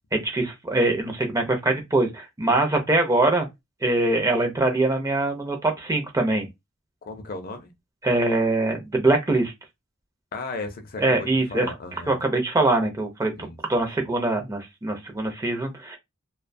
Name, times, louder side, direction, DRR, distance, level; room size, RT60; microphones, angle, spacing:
voice 1, 0.1-3.5 3.8-6.5 8.0-9.5 11.0-11.7 12.1-13.3 13.7-16.0, right 2 dB, 15° right, 0.5 m, -23 dB
voice 2, 7.0-7.7 10.3-12.2 13.4-13.6, left 3 dB, 45° left, 0.5 m, -35 dB
2.5 x 2.1 x 2.5 m
head